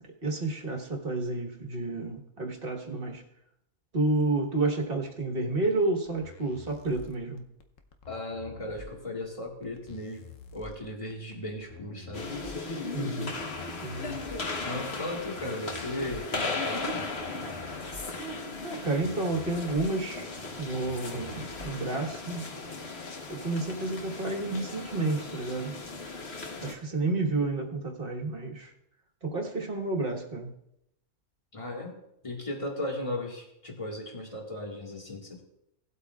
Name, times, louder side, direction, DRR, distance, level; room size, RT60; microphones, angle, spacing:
voice 1, 0.2-3.2 3.9-7.4 12.9-13.3 13.8-14.2 18.6-20.3 20.6-22.5 23.3-25.8 26.6-28.7 29.2-30.5, right 2 dB, 45° right, 2 dB, 1.6 m, -30 dB
sound 1, 6.1-22.0, left 4 dB, 70° left, 1.2 m, -48 dB
voice 2, 8.1-12.3 14.6-17.1 31.5-35.4, left 1 dB, 25° left, -1 dB, 1.9 m, -36 dB
sound 2, 12.1-26.7, left 3 dB, 50° left, 1.4 m, -37 dB
18.0 x 8.2 x 2.4 m, 0.81 s
omnidirectional pair, 1.4 m